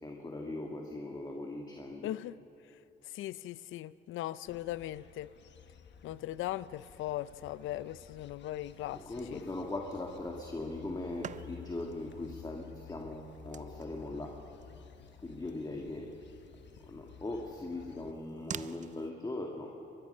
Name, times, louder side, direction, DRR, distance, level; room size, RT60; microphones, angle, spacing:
voice 1, 0.0-2.1 8.9-14.4 15.2-16.1 16.8-19.7, left 2 dB, 20° left, 2.0 m, -40 dB
voice 2, 2.0-2.4 2.7-2.8 3.0-5.3 6.0-9.0 9.3-9.4, left 14 dB, 85° left, 0.6 m, -39 dB
sound 1, 4.5-18.1, left 7 dB, 65° left, 1.2 m, -54 dB
sound 2, 8.6-19.1, right 8 dB, 40° right, 0.5 m, -51 dB
23.5 x 20.5 x 5.5 m
cardioid pair, 90°, 20 cm